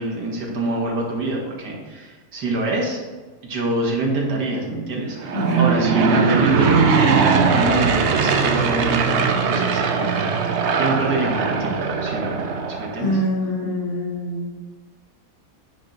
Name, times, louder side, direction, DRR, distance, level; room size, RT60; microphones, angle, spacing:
voice 1, 0.0-3.0 3.4-13.2, right 2 dB, 90° right, -1 dB, 2.0 m, -25 dB
Aircraft / Engine, 5.1-13.1, right 5 dB, 60° right, 0.7 m, -20 dB
voice 2, 5.3-5.7 13.0-14.5, right 2 dB, 85° left, -4 dB, 2.6 m, -23 dB
8.8 x 4.4 x 3.9 m, 1.3 s
omnidirectional pair, 1.7 m